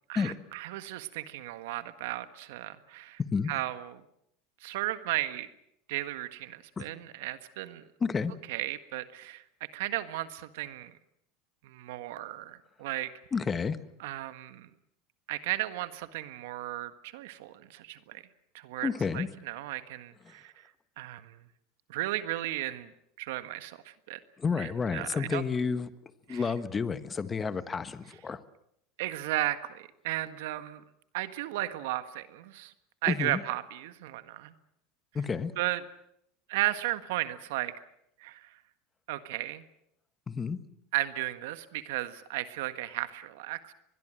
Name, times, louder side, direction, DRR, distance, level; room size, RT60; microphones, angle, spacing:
voice 1, 0.1-3.2 3.5-3.9 4.6-5.5 5.9-7.9 8.5-9.4 9.7-10.9 11.6-13.1 14.0-14.7 15.3-18.2 18.5-20.6 21.0-21.4 21.9-22.9 23.2-24.2 24.6-25.4 26.3-26.4 29.0-30.8 31.1-32.7 33.0-34.5 35.6-35.8 36.5-37.7 38.2-38.5 39.1-39.6 40.9-43.7, right 16 dB, 80° right, 11 dB, 1.6 m, -35 dB
voice 2, 8.0-8.3 13.3-13.8 18.8-19.3 20.2-20.3 24.4-25.9 26.3-28.4 33.1-33.4 35.1-35.5 40.3-40.6, left 5 dB, 20° left, 13 dB, 1.4 m, -30 dB
24.0 x 21.5 x 7.7 m, 0.76 s
supercardioid pair, 125°, 0 cm